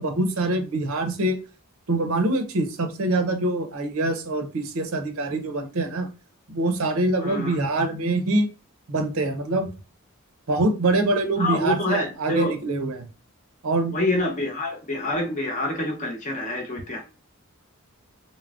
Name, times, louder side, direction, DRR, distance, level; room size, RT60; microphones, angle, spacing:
voice 1, 0.0-1.4 1.9-6.1 6.5-8.5 8.9-9.7 10.5-13.1 13.6-14.0, right 2 dB, 75° right, 7 dB, 0.6 m, -24 dB
voice 2, 7.2-7.6 11.4-12.5 13.9-17.0, left 1 dB, 35° left, 1 dB, 0.7 m, -27 dB
3.5 x 2.1 x 2.3 m, 0.32 s
head